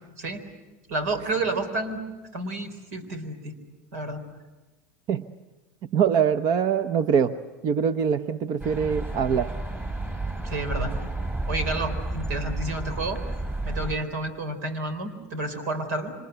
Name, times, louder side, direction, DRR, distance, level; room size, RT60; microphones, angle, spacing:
voice 1, 0.9-2.1 2.3-3.6 3.9-4.2 10.4-10.9 11.5-13.2 13.6-16.1, right 2 dB, 85° right, 11 dB, 3.9 m, -30 dB
voice 2, 5.9-7.4 7.6-9.5, right 7 dB, 50° right, 11 dB, 0.8 m, -23 dB
sound 1, 8.6-14.0, right 2 dB, 25° right, 4.6 m, -31 dB
27.0 x 25.5 x 8.0 m, 1.2 s
supercardioid pair, 105°, 9 cm